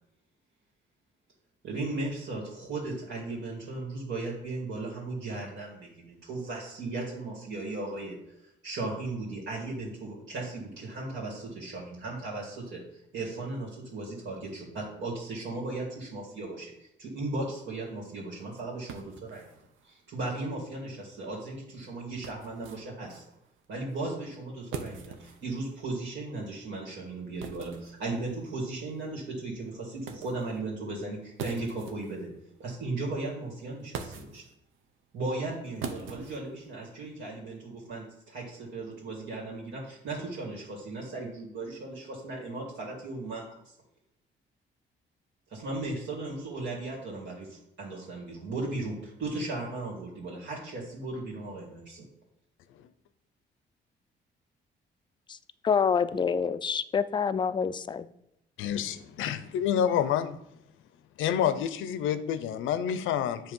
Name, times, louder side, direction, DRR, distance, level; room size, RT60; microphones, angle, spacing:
voice 1, 1.6-8.1 8.4-19.5 19.8-23.2 23.7-32.3 32.6-34.4 35.1-43.7 45.5-52.0, right 2 dB, 65° right, 2.2 m, -36 dB
sound 1, 17.5-37.1, right 6 dB, 85° right, 0.8 m, -46 dB
voice 2, 55.6-58.1, left 6 dB, 25° left, 0.3 m, -27 dB
voice 3, 58.6-60.4 61.2-63.5, left 9 dB, 85° left, 0.5 m, -28 dB
7.4 x 2.9 x 5.3 m
cardioid pair, 90°, 20 cm